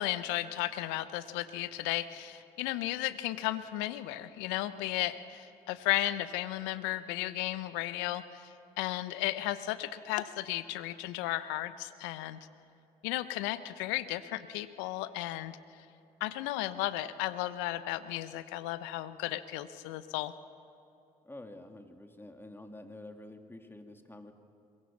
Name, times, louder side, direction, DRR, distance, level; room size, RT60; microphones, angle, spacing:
voice 1, 0.0-12.4 13.0-15.8 16.2-20.3, left 15 dB, 75° left, 13 dB, 0.9 m, -34 dB
voice 2, 21.2-24.3, left 1 dB, 10° left, 5 dB, 2.6 m, -48 dB
23.0 x 22.0 x 7.2 m, 2.8 s
hypercardioid pair, 50°, 19 cm